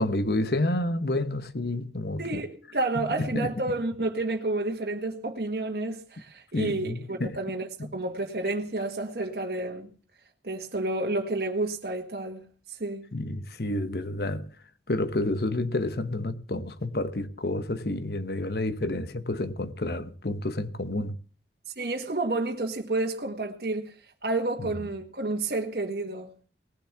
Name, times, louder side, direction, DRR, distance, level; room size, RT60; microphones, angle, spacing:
voice 1, 0.0-2.2 2.9-3.5 6.5-7.4 7.8-7.9 13.1-14.5 14.9-21.2, left 1 dB, 60° left, 1.0 m, -29 dB
voice 2, 2.2-9.9 10.4-13.0 21.8-23.9 24.2-26.5, right 2 dB, 60° right, 1.7 m, -30 dB
19.0 x 7.1 x 7.2 m
head